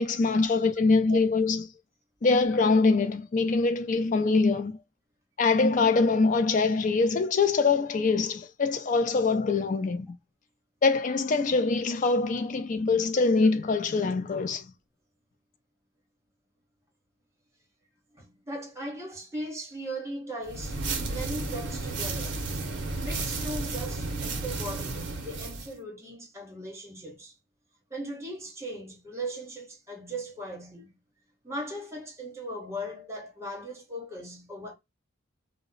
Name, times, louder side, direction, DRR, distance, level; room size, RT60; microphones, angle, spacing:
voice 1, 0.0-1.7 2.2-4.8 5.4-10.2 10.8-14.7, left 4 dB, 40° left, 0.4 m, -24 dB
voice 2, 18.1-22.4 23.0-27.3 27.9-31.0 31.4-34.7, right 1 dB, 15° right, 0.9 m, -38 dB
sound 1, 20.5-25.7, right 3 dB, 60° right, 0.6 m, -33 dB
2.1 x 2.0 x 3.7 m
head